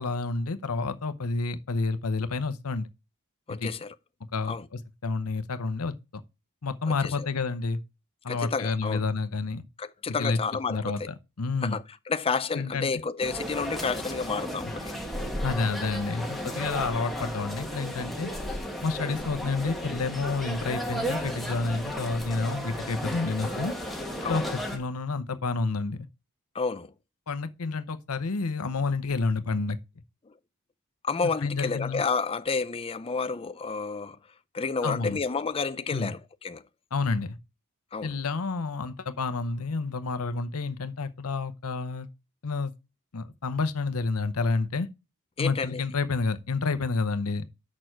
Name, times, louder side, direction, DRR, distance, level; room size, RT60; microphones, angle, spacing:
voice 1, 0.0-2.9 3.6-3.7 4.3-5.9 6.6-7.8 8.2-9.6 10.2-10.4 10.7-11.8 12.5-12.9 15.4-18.3 18.8-23.7 24.3-26.1 27.3-29.8 31.4-32.0 34.8-35.2 35.9-36.1 36.9-37.4 38.0-42.1 42.4-42.7 43.1-44.9 45.4-47.5, left 4 dB, 80° left, 0.8 m, -29 dB
voice 2, 3.5-3.9 4.4-4.7 7.0-7.3 8.3-9.0 9.8-11.1 11.6-15.0 24.2-24.4 26.5-26.9 30.3-30.4 31.0-34.2 34.5-36.6 37.9-38.2 45.4-45.8, left 4 dB, 25° left, 0.5 m, -30 dB
sound 1, 13.2-24.8, equal, ahead, 1.4 m, -34 dB
6.4 x 6.2 x 4.5 m
head